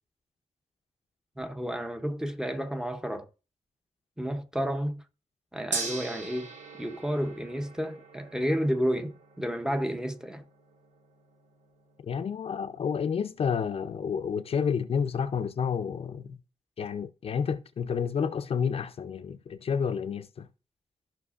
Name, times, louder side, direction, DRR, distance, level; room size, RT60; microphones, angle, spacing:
voice 1, 1.4-3.3 4.2-5.0 5.5-6.5 6.8-10.4, equal, 5° right, 0.6 m, -31 dB
Gong, 5.7-15.9, right 4 dB, 80° right, 1.6 m, -43 dB
voice 2, 12.0-16.4 16.8-20.5, left 6 dB, 50° left, 0.4 m, -30 dB
13.5 x 5.7 x 2.4 m
wide cardioid pair, 175°, 12 cm